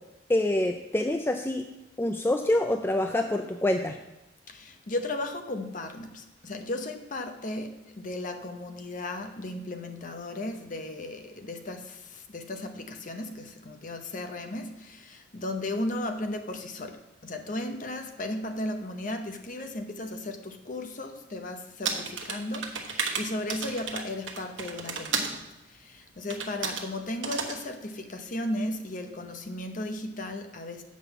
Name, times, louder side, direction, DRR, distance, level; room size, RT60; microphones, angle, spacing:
voice 1, 0.3-1.6 2.0-4.0, left 1 dB, 10° left, 5 dB, 0.3 m, -26 dB
voice 2, 4.5-30.8, left 1 dB, 40° left, 5 dB, 0.8 m, -35 dB
sound 1, 21.9-25.4 26.3-26.9 27.2-27.6, right 5 dB, 75° right, 1.0 m, -32 dB
7.5 x 5.4 x 6.9 m, 0.98 s
head